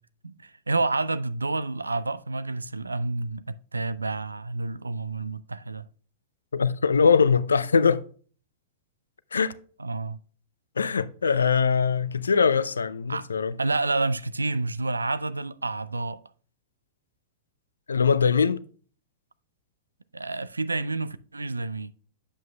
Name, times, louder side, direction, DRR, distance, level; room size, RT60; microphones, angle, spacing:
voice 1, 0.2-5.9 9.8-10.2 13.1-13.3 13.6-16.2 20.1-21.9, right 3 dB, 85° right, 0.3 m, -29 dB
voice 2, 6.5-8.0 9.3-9.5 10.8-13.6 17.9-18.6, left 5 dB, 75° left, 0.4 m, -22 dB
8.5 x 7.4 x 2.2 m
figure-of-eight pair, 100°, 0 cm